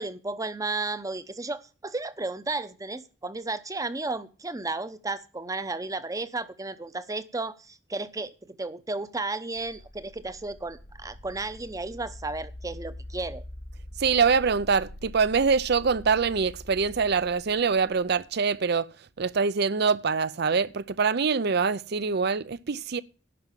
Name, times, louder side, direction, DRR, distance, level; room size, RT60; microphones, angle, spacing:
voice 1, 0.0-13.4, right 3 dB, 20° right, 0.8 m, -33 dB
sound 1, 9.5-18.3, left 1 dB, 50° left, 1.1 m, -44 dB
voice 2, 14.0-18.9 19.2-23.0, right 5 dB, 60° right, 0.6 m, -24 dB
11.0 x 5.8 x 8.9 m
head